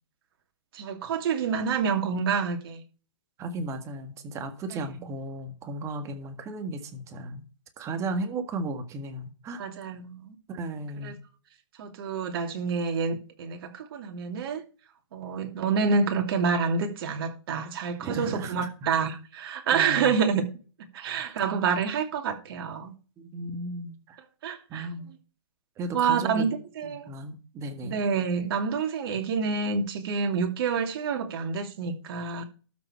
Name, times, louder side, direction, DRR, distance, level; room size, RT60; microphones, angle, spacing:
voice 1, 0.7-2.8 9.6-10.3 11.0-11.1 11.8-14.6 15.1-20.4 20.9-23.0 24.4-24.9 25.9-27.1 27.8-32.4, right 5 dB, 50° right, 2.8 m, -28 dB
voice 2, 3.4-7.4 7.8-10.0 10.5-11.2 18.0-18.9 19.7-20.2 23.2-24.2 24.7-25.1 25.8-26.5 26.8-28.0, right 2 dB, 20° right, 1.7 m, -35 dB
12.5 x 7.0 x 4.4 m
hypercardioid pair, 140°, 15 cm